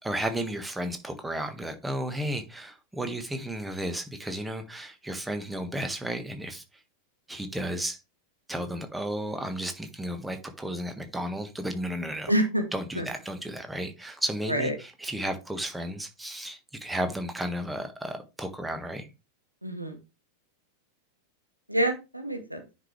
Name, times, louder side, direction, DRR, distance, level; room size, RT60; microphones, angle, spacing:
voice 1, 0.0-6.6 7.3-8.0 8.5-12.3 12.7-19.1, right 1 dB, 5° right, 6 dB, 1.5 m, -33 dB
voice 2, 12.3-12.6 13.0-13.1 14.5-14.7 19.6-20.0 21.7-22.6, right 1 dB, 90° right, 5 dB, 1.6 m, -27 dB
9.8 x 5.2 x 3.3 m, 0.26 s
figure-of-eight pair, 90°, 0 cm